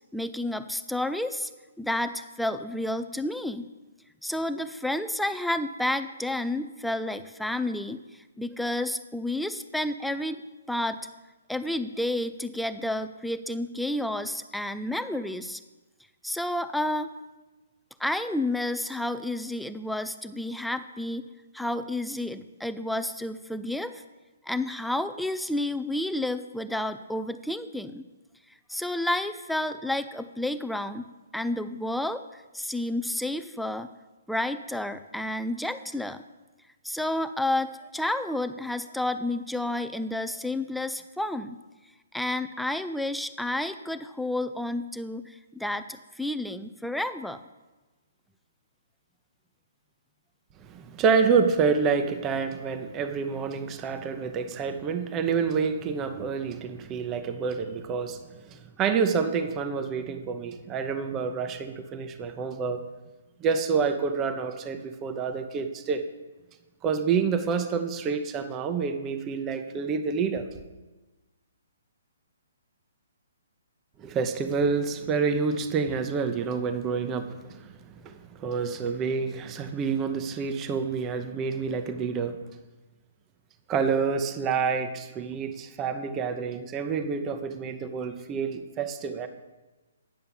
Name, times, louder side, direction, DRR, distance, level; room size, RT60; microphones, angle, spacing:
voice 1, 0.1-1.5 1.8-3.7 4.2-10.4 10.7-11.0 11.5-15.6 16.2-17.1 18.0-21.2 21.5-24.0 24.4-28.1 28.7-33.9 34.3-36.2 36.8-41.6 42.1-47.4, left 1 dB, ahead, 9 dB, 0.4 m, -30 dB
voice 2, 50.6-62.8 63.4-66.0 66.8-70.4 74.0-82.4 83.7-89.3, right 5 dB, 20° right, 8 dB, 0.8 m, -28 dB
9.5 x 6.7 x 6.9 m, 1.2 s
figure-of-eight pair, 130°, 0 cm